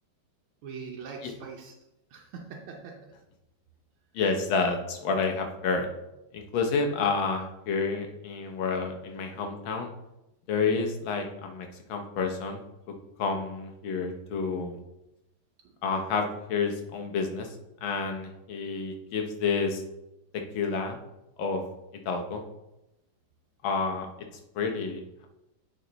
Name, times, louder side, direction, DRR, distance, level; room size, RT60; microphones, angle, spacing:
voice 1, 0.6-1.7 2.1-2.9 15.6-15.7, right 5 dB, 80° right, 0 dB, 1.7 m, -42 dB
voice 2, 4.1-5.9 6.3-9.9 10.5-12.6 13.2-14.8 15.8-17.5 17.8-19.8 20.5-21.0 21.4-21.6 22.0-22.4 23.6-24.1 24.5-25.3, left 4 dB, 70° left, 3 dB, 1.6 m, -29 dB
8.2 x 4.5 x 3.9 m, 0.91 s
omnidirectional pair, 2.3 m